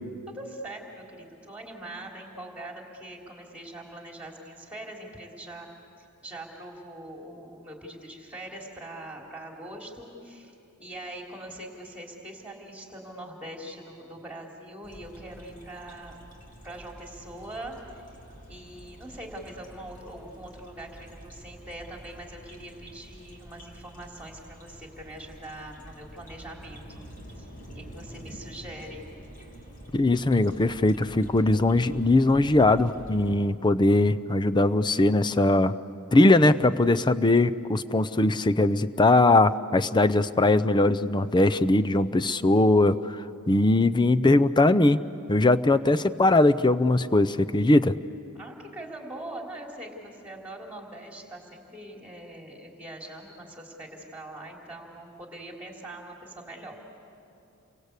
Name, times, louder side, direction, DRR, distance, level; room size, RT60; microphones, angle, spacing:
voice 1, 0.3-5.7 6.0-10.5 10.8-16.2 16.6-18.0 18.5-27.1 27.4-27.5 27.8-29.0 48.4-56.8, right 1 dB, 5° right, 0 dB, 3.6 m, -42 dB
sound 1, 14.8-33.4, equal, 35° left, 2.9 m, -46 dB
voice 2, 29.9-35.7 36.1-45.0 45.3-47.9, left 2 dB, 20° left, 12 dB, 0.5 m, -21 dB
29.5 x 24.0 x 8.2 m, 2.7 s
head